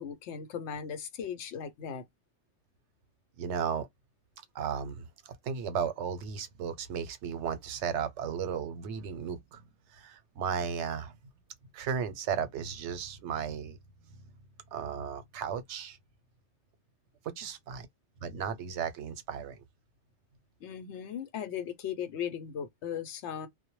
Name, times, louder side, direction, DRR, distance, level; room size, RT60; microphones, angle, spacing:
voice 1, 0.0-2.0 20.6-23.5, left 8 dB, 85° left, 0.9 m, -37 dB
voice 2, 3.4-3.9 4.5-9.6 9.9-11.1 11.7-13.8 14.1-14.3 14.7-16.0 17.4-17.9 18.2-19.6, right 7 dB, 90° right, 0.9 m, -35 dB
2.1 x 2.0 x 2.9 m
omnidirectional pair, 1.2 m